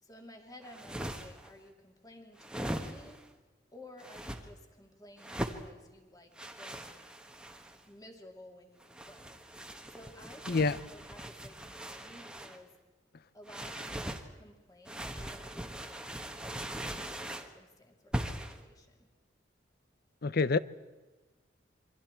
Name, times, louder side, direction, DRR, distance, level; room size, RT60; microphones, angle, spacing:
voice 1, 0.0-3.2 3.7-7.1 7.8-9.4 9.9-12.7 13.3-19.1, left 1 dB, 20° left, 2.6 m, -55 dB
sound 1, 0.6-1.5 2.4-3.3 4.0-4.4 5.2-5.6 6.4-7.8 8.8-12.6 13.5-14.2 14.8-17.5 18.1-18.6, right 1 dB, 5° right, 1.3 m, -40 dB
voice 2, 20.2-20.6, left 4 dB, 60° left, 0.7 m, -26 dB
28.0 x 24.0 x 4.5 m
head